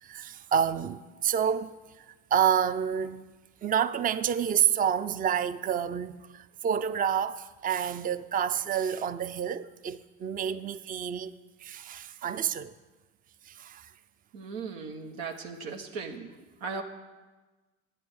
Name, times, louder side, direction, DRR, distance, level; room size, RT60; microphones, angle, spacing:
voice 1, 0.0-2.1 2.3-3.3 3.6-12.7 13.5-13.9, right 8 dB, 20° right, 0.4 m, -29 dB
voice 2, 14.3-16.3 16.6-16.8, right 5 dB, 85° right, 1.4 m, -37 dB
11.0 x 9.2 x 6.3 m
supercardioid pair, 80°, 40 cm